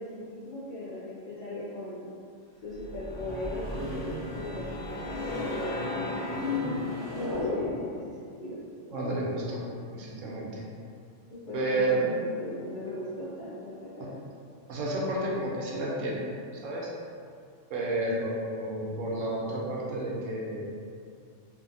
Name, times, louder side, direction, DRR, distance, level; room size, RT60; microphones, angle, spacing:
voice 1, 0.0-2.1 2.6-3.7 3.9-8.6 11.3-14.1 17.9-18.3, left 1 dB, 55° left, -9 dB, 0.6 m, -39 dB
sound 1, 2.8-8.0, left 2 dB, 5° left, 0.7 m, -33 dB
voice 2, 8.9-9.6 9.9-10.6 11.5-12.0 14.7-16.3 16.6-16.9 17.7-20.7, right 1 dB, 85° right, -3 dB, 1.0 m, -31 dB
2.6 x 2.4 x 2.5 m, 2.3 s
omnidirectional pair, 1.3 m